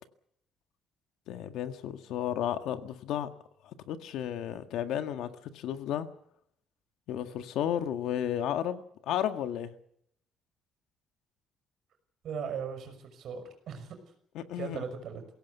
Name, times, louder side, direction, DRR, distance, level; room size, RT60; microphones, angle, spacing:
voice 1, 1.3-3.3 3.9-5.3 5.5-6.1 7.1-9.7 14.4-14.8, left 10 dB, 70° left, 1.8 m, -33 dB
voice 2, 12.2-14.0 14.6-15.2, right 7 dB, 50° right, 5.9 m, -38 dB
23.0 x 17.5 x 8.3 m
cardioid pair, 175°, 0 cm